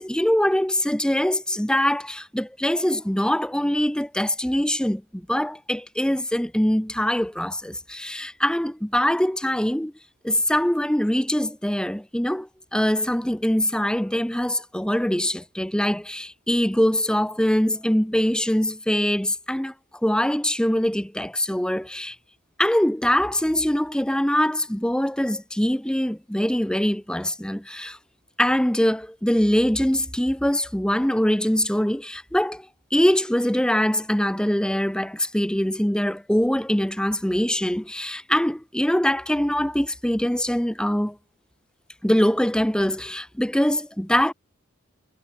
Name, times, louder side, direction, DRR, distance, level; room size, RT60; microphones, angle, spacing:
voice 1, 0.0-9.9 10.2-19.7 20.0-22.2 22.6-28.0 28.4-32.7 32.9-41.2 42.0-44.3, equal, 5° left, 0.8 m, -23 dB
head